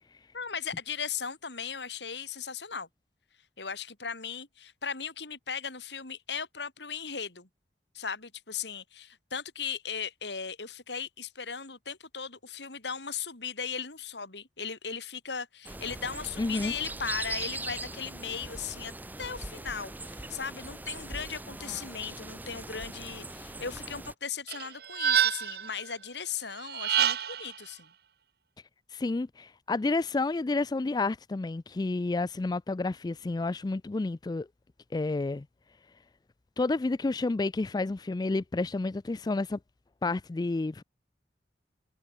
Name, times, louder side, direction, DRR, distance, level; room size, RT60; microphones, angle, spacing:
voice 1, 0.3-2.9 3.6-7.5 7.9-27.9, left 6 dB, 80° left, 3.6 m, -37 dB
sound 1, 15.6-24.1, right 2 dB, 10° right, 0.9 m, -40 dB
voice 2, 16.4-16.7 28.9-34.5 34.9-35.4 36.6-39.6 40.0-40.8, left 3 dB, 25° left, 0.3 m, -30 dB
sound 2, 24.5-25.7 26.6-27.5, right 8 dB, 65° right, 1.7 m, -27 dB
head